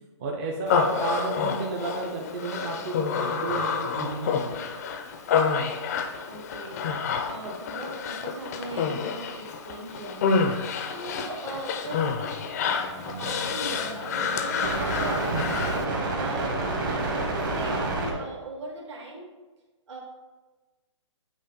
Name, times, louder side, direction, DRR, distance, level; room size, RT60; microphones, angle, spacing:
voice 1, 0.2-4.7 5.7-5.8 15.3-15.5, right 3 dB, 25° right, -1 dB, 0.5 m, -32 dB
Human voice, 0.7-15.8, left 5 dB, 30° left, 0.4 m, -29 dB
voice 2, 6.2-6.9 7.3-10.4 10.9-12.4 13.1-15.7 16.2-19.3 19.9-20.0, right 2 dB, 65° right, 0 dB, 1.8 m, -39 dB
sound 1, 12.6-18.1, right 2 dB, 40° right, 1.2 m, -30 dB
8.0 x 3.0 x 4.1 m, 1.2 s
hypercardioid pair, 155°, 16 cm